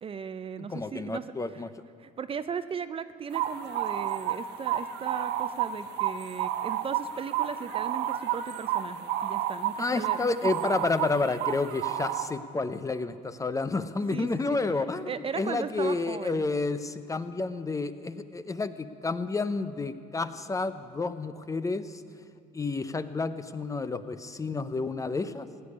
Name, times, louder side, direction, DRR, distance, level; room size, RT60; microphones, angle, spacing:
voice 1, 0.0-1.6 2.0-10.4 14.1-16.4, right 6 dB, 35° right, 12 dB, 0.5 m, -37 dB
voice 2, 0.6-1.7 9.8-15.1 15.4-22.0 22.5-25.5, left 3 dB, 20° left, 11 dB, 0.7 m, -30 dB
sound 1, 3.3-12.3, right 11 dB, 90° right, 0.9 m, -31 dB
16.5 x 8.6 x 9.7 m, 2.4 s
cardioid pair, 110°, 17 cm